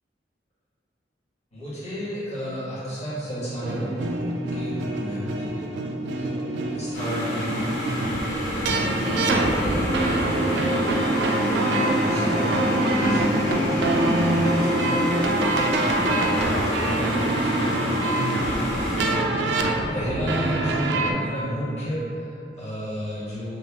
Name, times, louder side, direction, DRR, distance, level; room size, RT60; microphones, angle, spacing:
voice 1, 1.5-3.9 4.5-5.7 6.1-7.6 8.2-10.2 10.5-11.2 11.9-15.4 15.8-23.6, equal, 40° left, -11 dB, 1.3 m, -33 dB
sound 1, 3.6-21.1, right 2 dB, 90° right, 0.3 m, -25 dB
sound 2, 6.9-19.1, equal, 75° left, 1.0 m, -28 dB
sound 3, 9.6-16.8, equal, 55° left, 0.5 m, -32 dB
3.2 x 2.6 x 3.3 m, 2.8 s
head